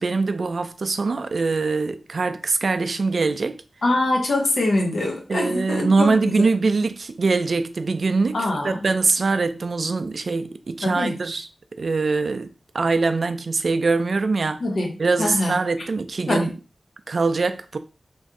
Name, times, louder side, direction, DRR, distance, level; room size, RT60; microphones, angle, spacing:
voice 1, 0.0-3.6 5.3-8.4 8.6-11.5 11.8-12.5 12.7-14.6 15.0-16.5 17.1-17.8, right 3 dB, 70° right, 0.3 m, -23 dB
voice 2, 3.8-6.3 8.3-8.8 10.8-11.2 14.6-14.9 15.2-15.6 16.3-16.5, left 2 dB, 80° left, 0.9 m, -23 dB
3.0 x 2.6 x 3.6 m
wide cardioid pair, 60°, 0 cm